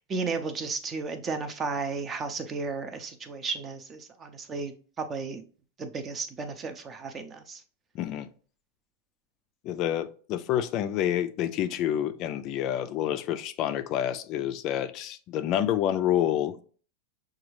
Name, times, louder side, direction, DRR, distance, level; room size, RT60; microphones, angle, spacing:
voice 1, 0.1-5.4 5.8-7.6, right 4 dB, 25° right, 0.5 m, -34 dB
voice 2, 7.9-8.3 9.6-16.6, left 11 dB, 40° left, 0.3 m, -28 dB
5.9 x 2.3 x 3.1 m
supercardioid pair, 135°, 0 cm